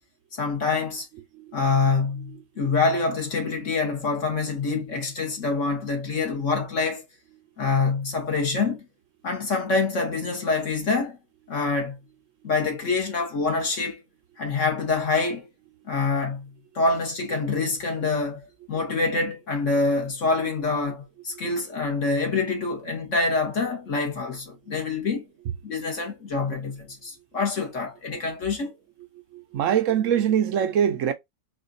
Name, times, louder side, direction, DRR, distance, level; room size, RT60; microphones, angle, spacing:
voice 1, 0.3-1.1 1.5-7.0 7.6-8.8 9.2-11.2 11.5-12.0 12.4-14.0 14.4-15.5 15.9-16.5 16.7-18.4 18.7-25.2 25.6-28.7, left 4 dB, 55° left, 1.6 m, -26 dB
voice 2, 1.1-1.6 2.3-2.7 5.3-5.4 18.9-19.0 24.7-24.8 28.1-28.2 29.3-31.1, right 9 dB, 65° right, 0.8 m, -25 dB
4.3 x 2.5 x 2.5 m
omnidirectional pair, 1.6 m